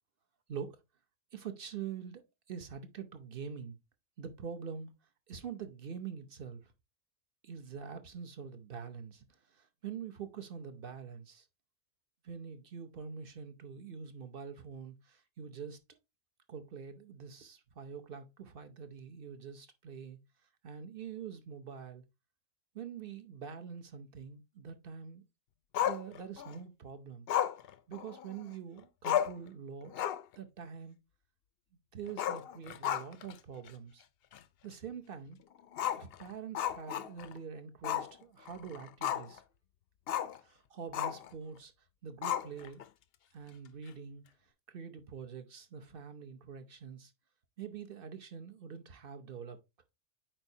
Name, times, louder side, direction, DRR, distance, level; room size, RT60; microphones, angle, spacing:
voice 1, 1.3-3.8 4.2-4.9 5.3-6.7 7.4-9.2 9.5-11.5 12.2-15.8 16.5-20.2 20.6-22.0 22.7-25.2 25.8-27.3 27.9-29.9 30.4-31.0 31.9-34.0 34.6-35.4 36.0-39.4 40.4-41.7 42.0-42.8 43.3-44.2 44.7-47.1 47.6-49.6, right 7 dB, 50° right, 0.7 m, -45 dB
Growling, 25.7-26.6 27.3-28.5 28.8-28.9 29.0-29.5 29.9-30.3 30.7-30.8 32.1-33.3 33.7-33.8 34.3-34.4 35.7-37.4 37.8-38.1 38.5-39.4 40.1-40.4 40.9-41.3 42.2-42.8, left 10 dB, 70° left, 0.5 m, -34 dB
8.9 x 4.4 x 2.7 m
omnidirectional pair, 1.5 m